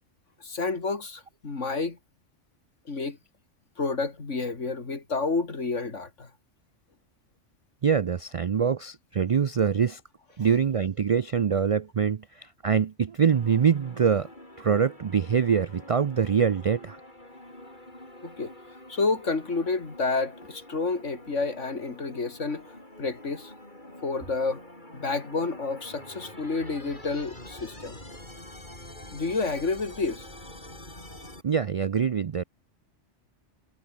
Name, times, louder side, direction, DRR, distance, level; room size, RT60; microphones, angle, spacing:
voice 1, 0.4-2.0 2.9-3.2 3.8-6.3 18.2-18.5 18.9-22.7 23.0-23.5 24.0-24.6 24.9-28.0 29.1-30.3, left 3 dB, 85° left, 3.1 m, -29 dB
voice 2, 7.8-10.0 10.4-14.3 14.6-17.0 31.4-32.4, right 7 dB, 65° right, 0.3 m, -24 dB
sound 1, 13.3-31.4, left 1 dB, 40° left, 6.8 m, -46 dB
omnidirectional pair, 1.2 m